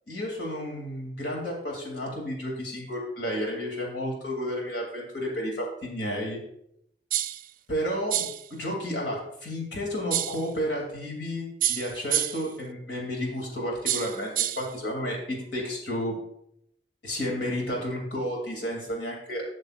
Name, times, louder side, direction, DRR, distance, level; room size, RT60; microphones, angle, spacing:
voice 1, 0.1-6.4 7.7-16.1 17.0-19.4, equal, 80° left, -1 dB, 2.6 m, -32 dB
sound 1, 7.1-7.5 8.1-8.5 10.1-10.5 11.6-12.5 13.9-14.7, right 12 dB, 50° right, 0.4 m, -28 dB
12.0 x 6.5 x 2.4 m, 0.77 s
head